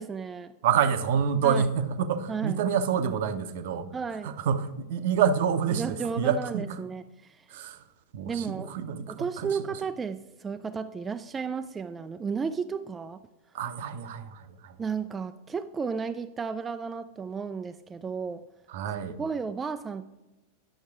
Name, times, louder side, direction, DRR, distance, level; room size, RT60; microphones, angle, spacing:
voice 1, 0.0-0.5 1.4-1.7 2.3-2.6 3.9-4.3 5.7-7.5 8.2-8.7 9.1-13.2 14.8-18.4 19.2-20.0, right 5 dB, 15° right, 9 dB, 0.3 m, -33 dB
voice 2, 0.6-3.9 4.2-6.8 7.5-7.8 8.1-9.5 13.5-14.8 18.7-19.2, right 7 dB, 55° right, 11 dB, 0.7 m, -27 dB
10.0 x 6.3 x 4.6 m, 1.0 s
figure-of-eight pair, 90°, 0 cm